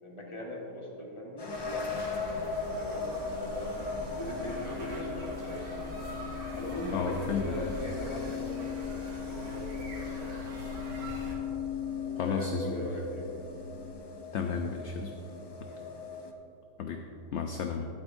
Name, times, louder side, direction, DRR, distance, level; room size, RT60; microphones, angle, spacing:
voice 1, 0.0-2.4 2.7-3.9 4.1-5.7 6.5-10.4 11.1-11.3 12.0-13.5 15.7-15.9, left 1 dB, 20° left, -2 dB, 1.6 m, -40 dB
sound 1, 1.4-16.3, left 3 dB, 40° left, 0.3 m, -40 dB
sound 2, 1.5-11.4, equal, 90° right, 2.2 m, -43 dB
sound 3, 3.8-13.9, left 9 dB, 85° left, 1.4 m, -40 dB
voice 2, 6.9-7.7 12.2-12.9 14.3-15.1 16.8-17.0 17.3-17.9, left 5 dB, 60° left, 4 dB, 0.8 m, -33 dB
12.0 x 12.0 x 2.6 m, 2.7 s
omnidirectional pair, 1.5 m